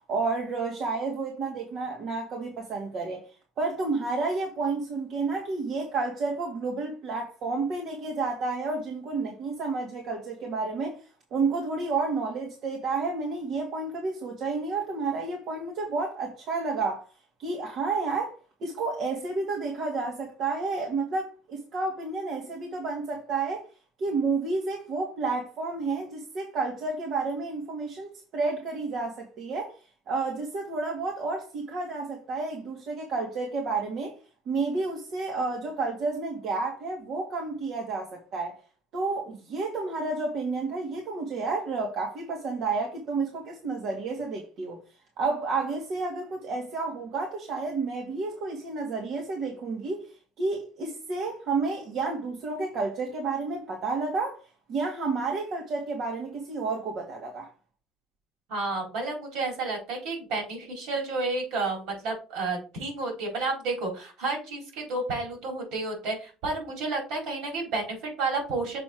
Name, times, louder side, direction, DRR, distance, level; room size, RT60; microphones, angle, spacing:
voice 1, 0.1-3.3 3.6-11.0 11.3-17.1 17.4-23.6 24.0-29.7 30.1-34.1 34.5-38.6 38.9-44.8 45.2-50.0 50.4-54.4 54.7-57.5, right 3 dB, 60° right, 2.1 m, -30 dB
voice 2, 58.5-68.8, right 3 dB, 75° right, 4.3 m, -31 dB
7.0 x 4.3 x 4.5 m
supercardioid pair, 90°, 0 cm